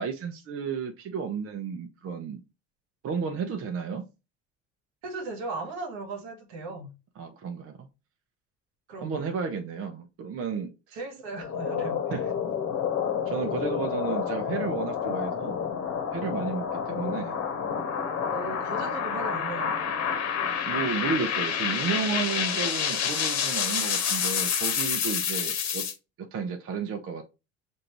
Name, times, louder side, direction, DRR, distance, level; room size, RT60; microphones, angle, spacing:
voice 1, 0.0-2.4 3.0-4.1 7.2-7.9 9.0-11.0 12.1-12.3 13.3-15.6 16.1-17.4 20.7-25.8 26.2-27.2, right 5 dB, 40° right, 0.8 m, -32 dB
voice 2, 5.0-6.9 8.9-9.3 10.9-12.0 18.3-20.0, right 3 dB, 75° right, 1.3 m, -37 dB
sound 1, 11.3-25.9, left 7 dB, 50° left, 1.1 m, -29 dB
6.4 x 2.6 x 3.0 m
hypercardioid pair, 70°, 35 cm